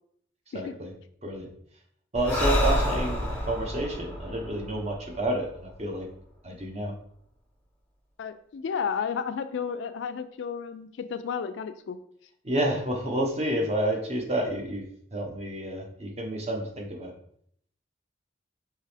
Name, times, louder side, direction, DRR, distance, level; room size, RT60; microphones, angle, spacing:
voice 1, 0.5-0.9 1.2-1.5 2.1-6.1 6.4-6.9 12.4-14.8 15.1-17.1, right 1 dB, 35° right, 1 dB, 0.8 m, -29 dB
Breathing, 2.1-5.7, equal, 5° left, 0.7 m, -28 dB
voice 2, 8.2-12.0, left 6 dB, 80° left, 10 dB, 0.3 m, -32 dB
4.6 x 2.9 x 3.3 m, 0.66 s
head